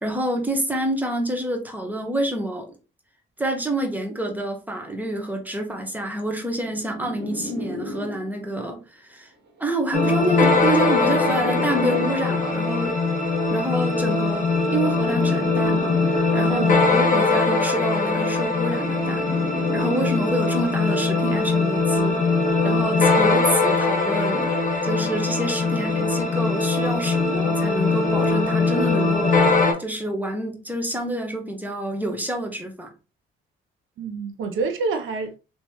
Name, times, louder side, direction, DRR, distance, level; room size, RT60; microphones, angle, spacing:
voice 1, 0.0-2.7 3.4-9.3 9.6-13.0 13.5-19.2 19.7-22.2 22.6-24.5 24.8-29.3 29.8-32.9, right 1 dB, 10° right, 1.1 m, -27 dB
sound 1, 6.2-8.6 9.6-12.6 13.6-16.6 17.6-20.6, left 1 dB, 55° right, 1.7 m, -36 dB
sound 2, 9.9-29.7, left 3 dB, 40° left, 1.5 m, -21 dB
voice 2, 16.5-16.8 34.0-35.4, right 4 dB, 80° right, 0.7 m, -27 dB
3.2 x 3.0 x 3.0 m
cardioid pair, 90°, 20 cm